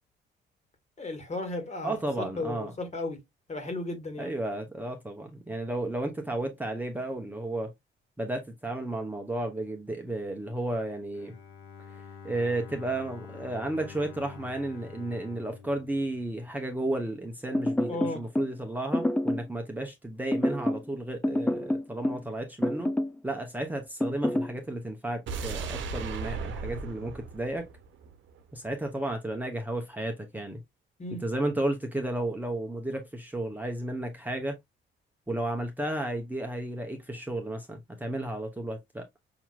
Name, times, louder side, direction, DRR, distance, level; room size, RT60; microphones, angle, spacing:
voice 1, 1.0-3.2 3.5-4.4 17.9-18.2 31.0-31.2, left 2 dB, 35° left, 1.8 m, -35 dB
voice 2, 1.8-2.7 4.2-7.7 8.2-11.3 12.2-22.9 23.2-27.7 28.5-30.6 31.2-34.6 35.3-39.0, right 1 dB, 10° right, 0.9 m, -33 dB
Bowed string instrument, 11.1-17.1, left 6 dB, 85° left, 1.0 m, -47 dB
sound 1, 17.5-18.5 18.9-19.5 20.3-20.9 21.2-22.3 22.6-23.2 24.0-24.5, left 1 dB, 5° left, 0.6 m, -27 dB
sound 2, 25.3-28.4 28.7-28.8, right 4 dB, 75° right, 1.0 m, -36 dB
6.0 x 2.9 x 2.4 m
cardioid pair, 90°, 20 cm